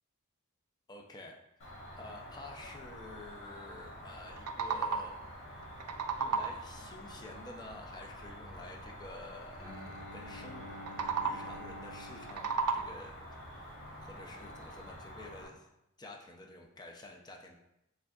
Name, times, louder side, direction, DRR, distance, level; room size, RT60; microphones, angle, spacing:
voice 1, 0.9-5.2 6.1-13.1 13.5-15.7 16.0-17.5, left 2 dB, 20° left, 1 dB, 0.5 m, -50 dB
Cricket, 1.6-15.5, equal, 60° left, 1.4 m, -48 dB
sound 1, 4.2-5.3 5.6-6.8 10.7-11.6 12.1-13.2, right 5 dB, 85° right, 0.4 m, -34 dB
Bowed string instrument, 9.6-13.5, left 1 dB, 30° right, 1.2 m, -49 dB
6.1 x 3.5 x 2.4 m, 0.85 s
head